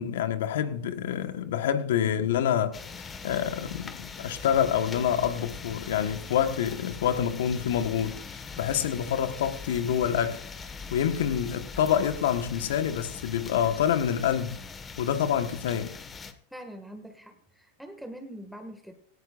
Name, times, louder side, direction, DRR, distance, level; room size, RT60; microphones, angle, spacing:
voice 1, 0.0-2.7 3.2-10.4 10.9-14.6 15.0-15.9, left 9 dB, 75° left, 1.4 m, -27 dB
sound 1, 2.7-16.3, left 5 dB, 25° left, 1.6 m, -41 dB
voice 2, 16.5-18.9, right 1 dB, ahead, 2.0 m, -43 dB
18.0 x 15.5 x 2.6 m
hypercardioid pair, 100°, 0 cm